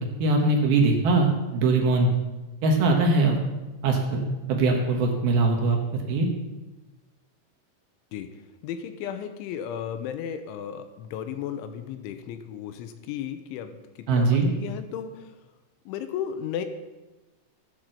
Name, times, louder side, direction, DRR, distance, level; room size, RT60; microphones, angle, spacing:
voice 1, 0.2-2.1 2.6-3.4 3.8-5.8 6.1-6.3 14.1-14.5, right 3 dB, 65° right, 1 dB, 2.9 m, -21 dB
voice 2, 8.6-15.3 15.9-16.7, left 9 dB, 85° left, 8 dB, 3.2 m, -34 dB
14.5 x 9.1 x 6.6 m, 1.1 s
omnidirectional pair, 5.5 m